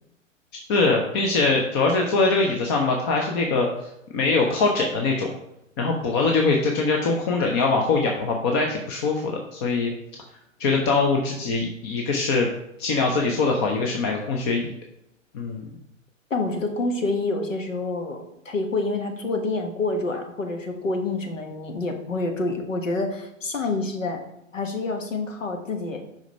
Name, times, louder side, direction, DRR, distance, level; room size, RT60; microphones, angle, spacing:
voice 1, 0.7-3.7 4.1-5.3 5.8-9.9 10.6-12.5 12.8-14.7 15.3-15.7, left 3 dB, 20° left, 1 dB, 0.5 m, -22 dB
voice 2, 16.3-24.2 24.5-26.0, left 3 dB, 70° left, 4 dB, 1.4 m, -27 dB
5.2 x 5.0 x 5.1 m, 0.81 s
figure-of-eight pair, 115°, 39 cm